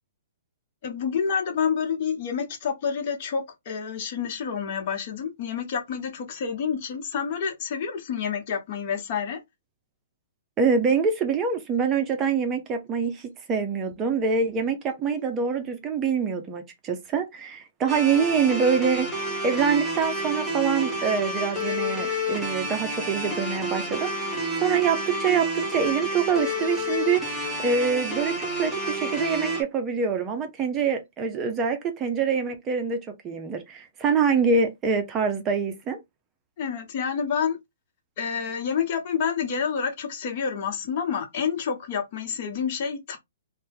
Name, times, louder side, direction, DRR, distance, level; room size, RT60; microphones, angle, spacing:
voice 1, 0.8-9.4 36.6-37.6 38.2-43.2, left 7 dB, 45° left, 0.9 m, -28 dB
voice 2, 10.6-19.1 19.4-24.3 24.6-36.0, right 5 dB, 25° right, 0.6 m, -25 dB
sound 1, 17.9-29.6, equal, ahead, 1.0 m, -29 dB
2.7 x 2.2 x 3.4 m
hypercardioid pair, 135°, 0 cm